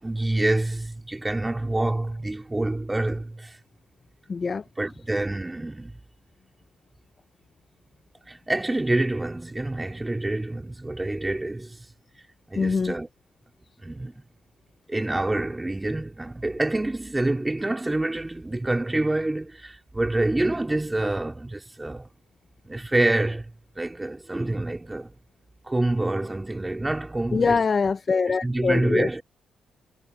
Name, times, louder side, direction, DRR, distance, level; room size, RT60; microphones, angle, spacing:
voice 1, 0.0-3.6 4.8-5.9 8.3-11.9 12.5-13.1 13.8-14.1 14.9-22.1 22.7-25.1 25.6-27.5 28.3-29.2, right 2 dB, 15° right, 4.1 m, -27 dB
voice 2, 4.3-4.6 12.6-12.9 27.3-29.1, left 5 dB, 35° left, 0.6 m, -23 dB
cardioid pair, 90°, 0 cm